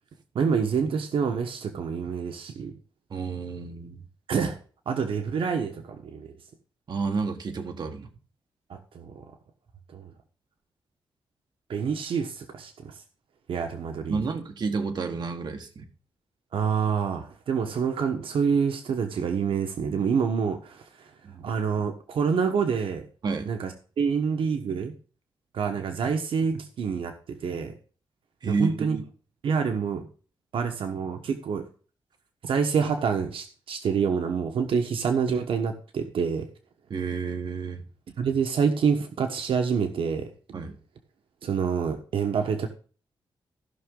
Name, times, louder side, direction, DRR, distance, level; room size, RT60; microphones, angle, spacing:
voice 1, 0.3-2.7 4.3-4.6 4.9-6.3 8.7-9.2 9.9-10.1 11.7-12.9 13.5-14.2 16.5-20.8 21.4-23.0 23.5-24.9 25.5-27.7 28.5-29.0 29.4-30.1 30.5-31.6 32.4-36.5 38.2-40.3 41.4-42.7, right 6 dB, 80° right, 6 dB, 1.1 m, -27 dB
voice 2, 3.1-4.0 6.9-8.1 14.1-15.9 21.2-21.4 23.2-23.5 28.4-29.0 36.9-37.8 40.5-40.7, right 4 dB, 55° right, 6 dB, 1.5 m, -30 dB
15.0 x 6.1 x 3.8 m, 0.39 s
wide cardioid pair, 130°, 9 cm